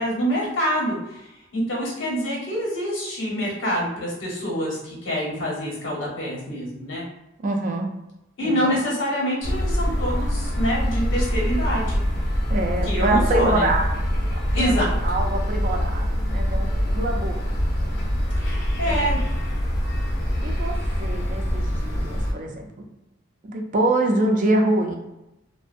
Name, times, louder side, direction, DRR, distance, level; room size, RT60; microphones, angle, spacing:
voice 1, 0.0-7.0 8.4-12.0 12.8-13.7 14.5-15.0 18.4-19.2, equal, 85° left, -4 dB, 1.0 m, -26 dB
voice 2, 7.4-7.9 8.4-8.8 12.5-13.9 14.3-14.7 15.0-17.6 18.9-19.3 20.4-22.6 23.4-24.9, right 2 dB, 45° right, 1 dB, 0.4 m, -25 dB
sound 1, 9.4-22.3, equal, 55° left, 0.5 m, -24 dB
2.4 x 2.0 x 2.5 m, 0.91 s
head